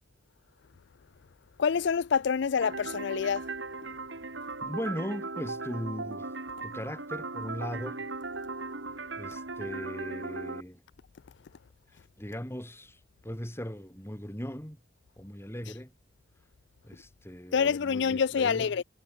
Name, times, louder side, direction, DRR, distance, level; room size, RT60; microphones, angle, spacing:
voice 1, 1.6-3.4 17.5-18.8, left 6 dB, 65° left, 0.4 m, -26 dB
sound 1, 2.6-10.6, right 3 dB, 75° right, 2.8 m, -38 dB
voice 2, 4.6-6.3 6.6-8.0 9.2-10.8 12.2-14.8 15.2-15.9 16.8-18.7, equal, 15° left, 4.6 m, -38 dB
head